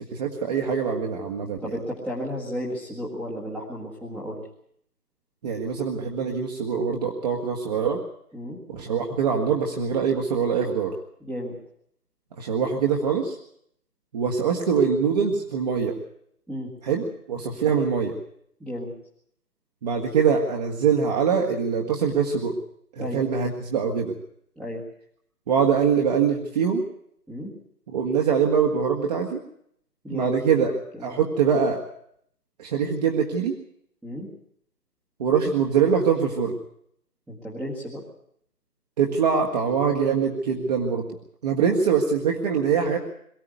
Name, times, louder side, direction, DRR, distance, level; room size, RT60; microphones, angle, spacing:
voice 1, 0.0-1.6 5.4-8.0 8.7-10.9 12.4-13.4 14.1-16.0 16.8-18.1 19.8-22.6 23.0-24.1 25.5-26.8 27.9-29.4 30.1-30.7 31.0-31.8 32.6-33.5 35.2-36.5 39.0-41.1 41.4-43.0, right 6 dB, 25° right, 0 dB, 1.9 m, -23 dB
voice 2, 1.6-4.4 8.3-8.6 11.2-11.5 16.5-16.7 18.6-18.9 23.0-23.2 24.6-24.8 27.3-27.5 30.0-31.2 34.0-34.3 37.3-38.0, equal, ahead, -6 dB, 1.7 m, -33 dB
22.5 x 15.0 x 9.4 m, 0.69 s
figure-of-eight pair, 145°, 47 cm